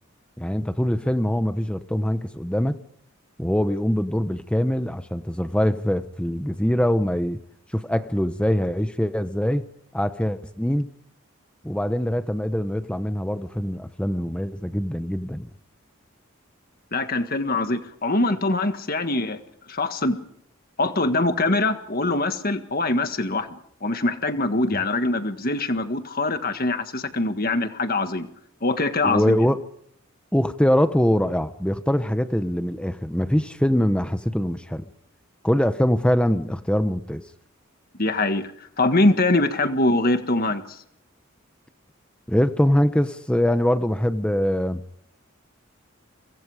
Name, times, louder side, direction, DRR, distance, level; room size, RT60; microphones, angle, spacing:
voice 1, 0.4-2.8 3.4-7.4 7.7-9.6 9.9-10.9 11.6-15.5 24.7-24.8 29.0-29.6 30.3-34.9 35.4-37.2 42.3-44.8, equal, 5° left, 10 dB, 0.8 m, -23 dB
voice 2, 16.9-19.4 19.7-20.2 20.8-28.3 28.6-29.4 38.0-38.5 38.8-40.8, left 2 dB, 45° left, 8 dB, 1.7 m, -23 dB
30.0 x 24.5 x 5.0 m, 0.70 s
head